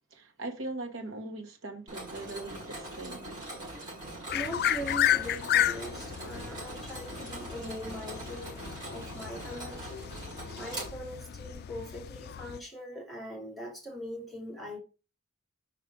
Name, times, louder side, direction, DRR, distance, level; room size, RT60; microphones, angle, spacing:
voice 1, 0.1-3.3, right 2 dB, 65° right, 1.4 m, -40 dB
Mechanisms, 1.9-11.4, right 1 dB, 20° right, 4.6 m, -42 dB
sound 1, 4.3-12.6, left 11 dB, 45° left, 0.3 m, -33 dB
voice 2, 4.3-8.6 8.9-10.2 10.6-14.8, equal, ahead, 2.6 m, -41 dB
5.5 x 4.9 x 5.2 m
head